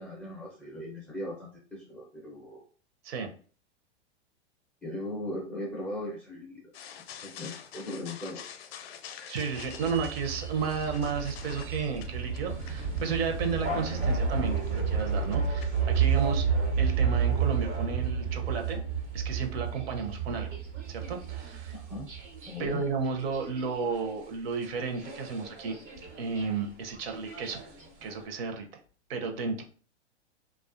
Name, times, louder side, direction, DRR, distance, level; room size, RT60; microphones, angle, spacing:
voice 1, 0.0-2.6 4.8-6.7 7.2-8.4 13.4-13.5 21.7-22.1 22.5-22.8, left 1 dB, 5° left, -4 dB, 0.4 m, -38 dB
sound 1, 6.7-16.4, left 8 dB, 60° left, 0.5 m, -47 dB
voice 2, 9.3-16.5 16.8-18.8 19.1-20.6 20.9-21.7 22.6-25.8 26.2-27.6 28.0-28.7 29.1-29.6, right 5 dB, 60° right, 4 dB, 0.7 m, -33 dB
sound 2, 9.5-24.3 24.6-24.7 24.9-28.3, right 6 dB, 85° right, 1.2 m, -31 dB
2.4 x 2.3 x 2.4 m, 0.42 s
hypercardioid pair, 115°, 34 cm